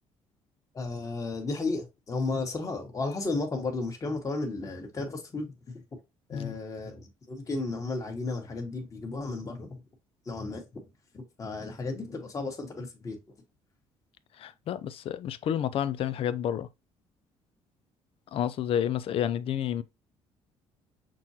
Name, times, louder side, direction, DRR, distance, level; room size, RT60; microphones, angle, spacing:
voice 1, 0.7-5.8 6.3-9.8 10.2-10.7 11.1-13.2, left 3 dB, 30° left, 1.3 m, -34 dB
voice 2, 14.4-16.7 18.3-19.8, left 10 dB, 60° left, 0.4 m, -30 dB
6.0 x 2.3 x 2.8 m
cardioid pair, 90°, 11 cm